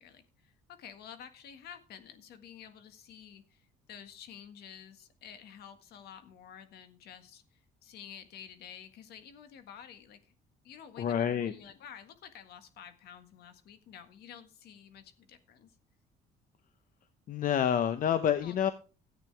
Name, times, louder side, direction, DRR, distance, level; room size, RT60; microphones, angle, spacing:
voice 1, 0.0-10.3 10.6-15.7 18.4-18.7, left 8 dB, 70° left, 9 dB, 1.7 m, -51 dB
voice 2, 11.0-11.5 17.3-18.7, left 9 dB, 55° left, 11 dB, 0.9 m, -28 dB
13.5 x 9.1 x 3.4 m, 0.32 s
cardioid pair, 110°, 17 cm